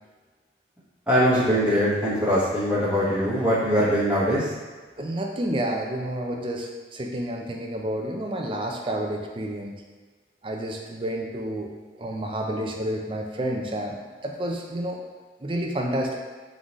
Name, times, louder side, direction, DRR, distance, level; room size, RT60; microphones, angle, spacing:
voice 1, 1.1-4.4, equal, 5° right, -11 dB, 1.3 m, -22 dB
voice 2, 5.0-9.7 10.4-15.0 15.4-16.2, right 1 dB, 30° right, 1 dB, 0.4 m, -30 dB
3.9 x 3.7 x 3.1 m, 1.4 s
head